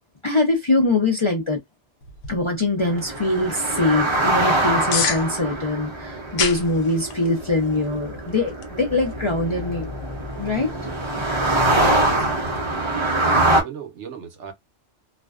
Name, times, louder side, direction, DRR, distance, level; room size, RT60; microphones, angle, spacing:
voice 1, 0.2-1.6 2.3-9.9 10.4-10.7, left 2 dB, 35° left, 0.5 m, -23 dB
sound 1, 2.0-12.6, left 6 dB, 90° left, 1.0 m, -34 dB
sound 2, 2.8-13.6, right 1 dB, 30° right, 0.6 m, -24 dB
voice 2, 11.6-12.5 13.2-14.5, right 8 dB, 75° right, 1.0 m, -38 dB
2.5 x 2.1 x 2.3 m
omnidirectional pair, 1.2 m